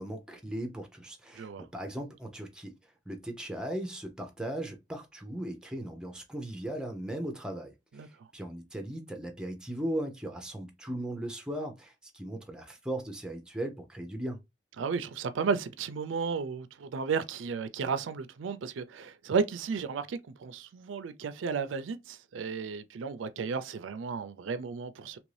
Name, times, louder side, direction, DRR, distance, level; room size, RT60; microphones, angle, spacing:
voice 1, 0.0-2.7 3.1-14.4, right 1 dB, 5° right, 0.5 m, -38 dB
voice 2, 1.3-1.7 7.9-8.3 14.8-25.2, right 5 dB, 90° right, 0.4 m, -33 dB
2.9 x 2.6 x 3.2 m
head